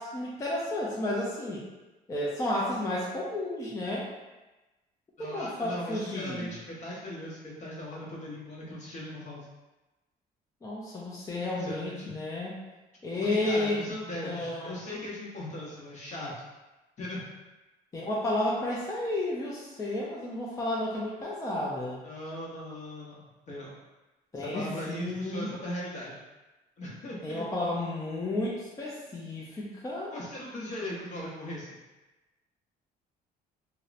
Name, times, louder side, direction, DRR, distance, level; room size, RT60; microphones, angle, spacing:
voice 1, 0.0-1.7 2.1-4.1 5.2-6.5 10.6-12.6 13.0-13.8 14.2-14.7 17.9-22.0 24.3-25.5 27.2-30.1, left 1 dB, 20° left, -5 dB, 0.4 m, -32 dB
voice 2, 5.2-9.5 11.5-12.2 13.1-16.3 17.0-17.2 22.0-23.1 23.5-23.8 24.4-26.2 26.8-27.4 30.1-31.8, left 1 dB, 45° left, -5 dB, 0.8 m, -38 dB
2.7 x 2.0 x 2.4 m, 1.1 s
cardioid pair, 110°, 17 cm